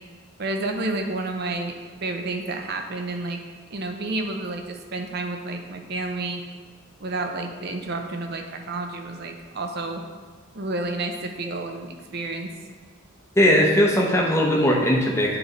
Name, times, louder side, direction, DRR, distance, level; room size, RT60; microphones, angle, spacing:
voice 1, 0.4-1.7 2.0-3.4 3.7-6.4 7.0-10.0 10.5-12.5, right 2 dB, 50° right, 4 dB, 0.6 m, -30 dB
voice 2, 13.4-15.4, equal, 15° left, -1 dB, 0.7 m, -19 dB
8.5 x 3.3 x 3.9 m, 1.6 s
head